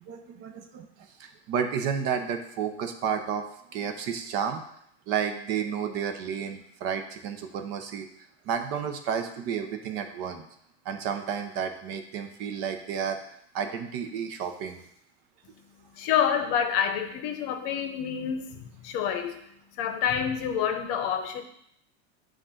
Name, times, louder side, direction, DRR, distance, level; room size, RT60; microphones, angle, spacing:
voice 1, 0.0-3.4 3.7-4.6 5.1-8.1 8.4-10.5 10.8-13.2 13.5-14.8, right 7 dB, 45° right, 6 dB, 0.7 m, -31 dB
voice 2, 15.8-21.4, left 8 dB, 55° left, 7 dB, 0.8 m, -28 dB
7.5 x 2.5 x 5.7 m, 0.71 s
supercardioid pair, 145°, 34 cm